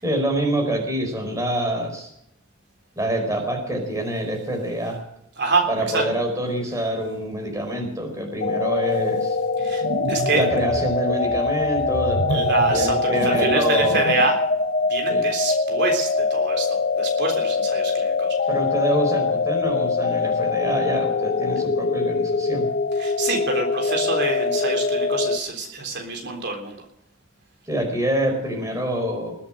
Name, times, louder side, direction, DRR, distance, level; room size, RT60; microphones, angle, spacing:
voice 1, 0.0-2.1 3.0-5.0 5.7-9.4 10.3-14.1 15.1-15.2 18.5-22.7 27.7-29.4, right 1 dB, 15° right, 3 dB, 4.7 m, -26 dB
voice 2, 5.4-6.1 9.6-10.5 12.3-14.4 14.9-18.4 22.9-26.8, right 3 dB, 55° right, 2 dB, 3.7 m, -26 dB
sound 1, 8.4-25.4, left 4 dB, 40° left, 0.9 m, -23 dB
sound 2, 9.6-14.4, right 3 dB, 75° right, 0.9 m, -29 dB
21.0 x 8.6 x 7.9 m, 0.75 s
head